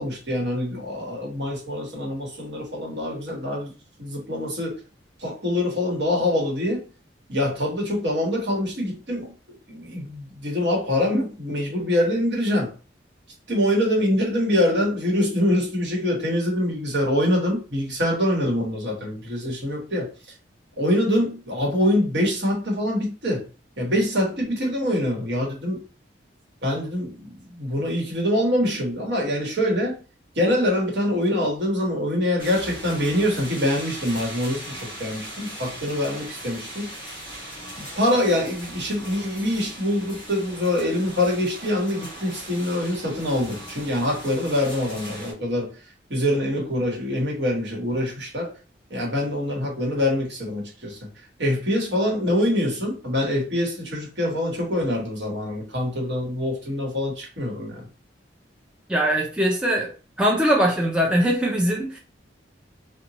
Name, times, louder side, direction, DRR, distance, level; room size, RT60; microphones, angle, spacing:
voice 1, 0.0-3.7 4.0-4.7 5.2-6.8 7.3-9.3 9.7-12.7 13.5-20.1 20.8-23.5 23.8-25.8 26.6-30.0 30.3-36.9 37.8-45.7 46.1-48.5 48.9-51.0 51.4-57.9, left 1 dB, 65° right, 1.1 m, -24 dB
sound 1, 32.4-45.3, right 1 dB, 25° left, 1.0 m, -39 dB
voice 2, 58.9-59.9 60.2-62.0, equal, 5° right, 0.3 m, -21 dB
2.8 x 2.2 x 2.9 m
head